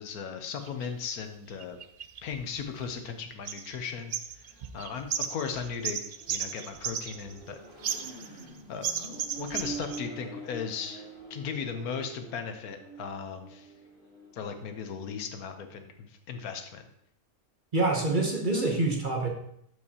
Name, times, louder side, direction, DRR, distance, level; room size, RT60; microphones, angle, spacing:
voice 1, 0.0-1.8 2.2-4.1 4.7-6.0 6.3-7.6 7.9-8.4 8.7-11.0 11.3-13.7 14.3-15.9 16.3-16.8, left 6 dB, 75° left, 7 dB, 1.3 m, -37 dB
sound 1, 0.7-0.9 1.6-3.1 3.5-3.8 4.1-7.5 7.8-8.5 8.8-10.0, right 8 dB, 85° right, 0.4 m, -35 dB
Accelerating revving vroom, 4.4-14.9, right 2 dB, 35° left, 1.6 m, -46 dB
voice 2, 17.7-19.3, right 2 dB, 40° right, 0 dB, 1.0 m, -26 dB
12.0 x 4.8 x 2.8 m, 0.73 s
omnidirectional pair, 1.6 m